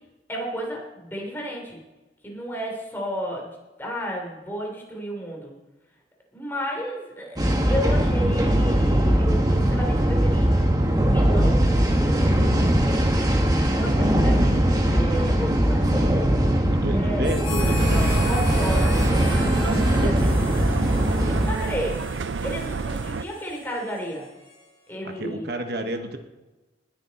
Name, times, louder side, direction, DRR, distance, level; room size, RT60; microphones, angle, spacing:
voice 1, 0.3-1.8 2.2-3.5 3.8-5.5 6.3-10.5 10.9-11.8 12.0-13.4 13.7-16.2 16.9-17.4 17.8-20.1 20.8-21.1 21.4-22.0 22.4-24.2 24.9-25.5, equal, 10° left, -1 dB, 3.4 m, -33 dB
sound 1, 7.4-21.5, equal, 20° right, 1.4 m, -20 dB
voice 2, 15.8-16.3 16.7-18.3 19.5-20.6 25.0-26.2, right 1 dB, 60° right, 6 dB, 1.1 m, -31 dB
Harmonica, 17.2-25.0, left 3 dB, 30° left, 3.5 m, -38 dB
sound 2, 17.6-23.3, right 4 dB, 90° right, 0.5 m, -29 dB
19.5 x 8.7 x 4.3 m, 1.1 s
head